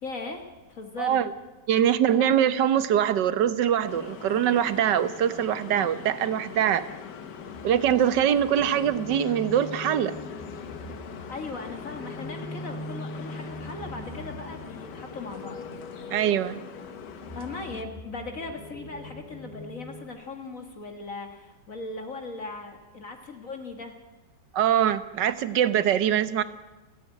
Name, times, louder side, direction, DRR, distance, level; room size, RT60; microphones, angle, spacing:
voice 1, 0.0-0.4 0.7-1.2 2.1-2.3 11.3-15.6 17.3-24.0, left 3 dB, 50° left, 5 dB, 2.1 m, -38 dB
voice 2, 1.0-1.3 1.7-6.8 7.6-10.2 16.1-16.6 24.5-26.4, right 9 dB, 80° right, 14 dB, 1.6 m, -23 dB
sound 1, 3.9-17.8, left 7 dB, 75° left, 1.8 m, -42 dB
sound 2, 7.3-20.1, equal, 25° left, 2.6 m, -42 dB
29.5 x 10.5 x 9.1 m, 1.2 s
omnidirectional pair, 1.9 m